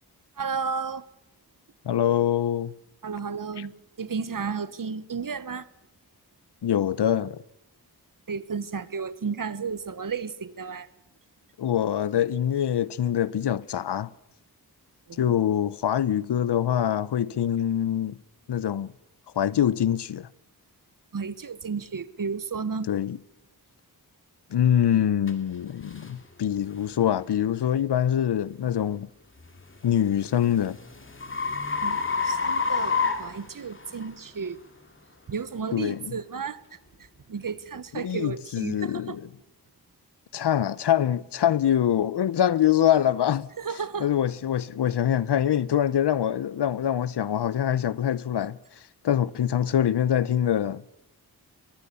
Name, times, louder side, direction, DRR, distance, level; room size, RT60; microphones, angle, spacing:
voice 1, 0.4-1.0 3.0-3.7 4.0-5.6 8.3-10.9 15.1-15.3 21.1-22.9 31.8-34.6 35.3-36.6 37.3-39.2 43.6-44.1, right 5 dB, 55° right, 1.4 m, -33 dB
voice 2, 1.8-2.7 3.6-3.7 6.6-7.4 11.6-14.1 15.2-18.2 18.5-18.9 19.4-20.3 22.9-23.2 24.5-29.1 29.8-30.8 35.7-36.1 37.9-39.3 40.3-43.5 44.0-48.6 49.0-50.8, left 10 dB, 85° left, 0.8 m, -24 dB
sound 1, 25.3-25.4 25.9-26.1 26.7-27.0 29.6-34.1, left 5 dB, 30° left, 2.5 m, -28 dB
23.0 x 22.0 x 7.0 m
wide cardioid pair, 90°, 39 cm